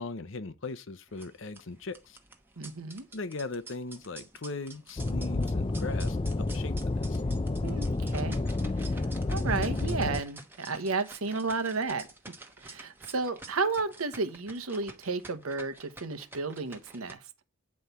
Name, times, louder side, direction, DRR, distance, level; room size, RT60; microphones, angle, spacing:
voice 1, 0.0-2.2 3.1-7.2, left 3 dB, 60° left, 0.8 m, -39 dB
sound 1, 1.1-17.1, right 2 dB, 10° right, 1.0 m, -49 dB
voice 2, 2.6-3.1 7.6-8.4 8.8-8.9 9.3-12.1 12.6-17.2, right 4 dB, 80° right, 1.0 m, -32 dB
sound 2, 5.0-10.2, left 2 dB, 25° left, 0.4 m, -30 dB
9.5 x 4.4 x 6.7 m
head